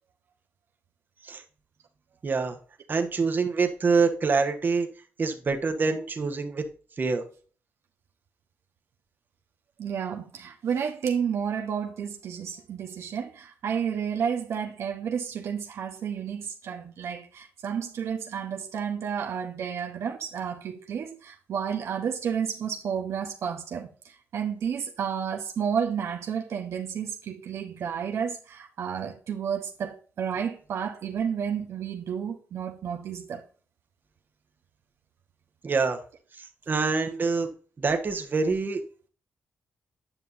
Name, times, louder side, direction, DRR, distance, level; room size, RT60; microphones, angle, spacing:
voice 1, 2.2-2.6 2.9-4.9 5.2-6.6 7.0-7.2 35.6-36.0 36.4-37.5 37.8-38.8, right 4 dB, 45° right, 1.3 m, -25 dB
voice 2, 9.8-33.4, right 7 dB, 75° right, 1.0 m, -31 dB
9.1 x 5.7 x 2.7 m
cardioid pair, 80°, 5 cm